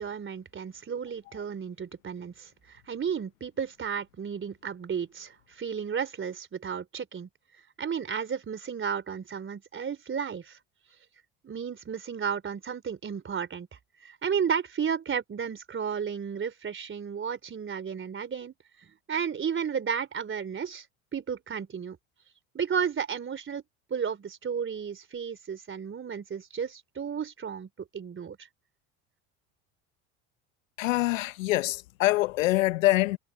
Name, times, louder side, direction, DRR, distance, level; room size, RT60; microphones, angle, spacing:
voice 1, 0.0-7.3 7.8-10.6 11.4-13.7 14.0-18.5 18.8-20.9 21.1-22.0 22.5-23.6 23.9-28.4, right 7 dB, 30° right, 3.7 m, -33 dB
voice 2, 30.8-33.2, left 18 dB, 85° left, 1.1 m, -25 dB
hypercardioid pair, 80°, 38 cm